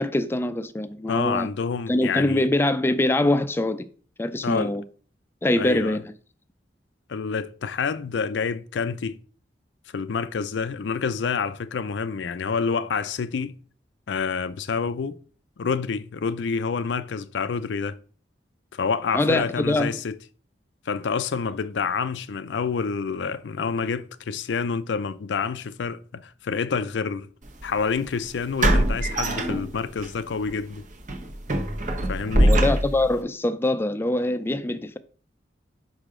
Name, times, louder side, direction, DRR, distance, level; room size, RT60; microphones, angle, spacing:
voice 1, 0.0-1.5 1.9-3.9 4.2-4.8 5.4-6.0 19.1-19.9 32.4-35.0, left 1 dB, 15° left, 0.3 m, -23 dB
voice 2, 1.1-2.5 4.4-4.7 5.6-6.0 7.1-9.2 9.9-13.5 14.1-15.2 15.6-18.0 18.7-20.2 20.9-27.3 27.6-30.9 32.1-32.6, left 5 dB, 90° left, 0.4 m, -28 dB
sound 1, 27.5-27.6 28.6-30.1 30.5-30.6 31.1-33.2, right 1 dB, 45° right, 1.0 m, -22 dB
5.5 x 5.0 x 3.7 m
head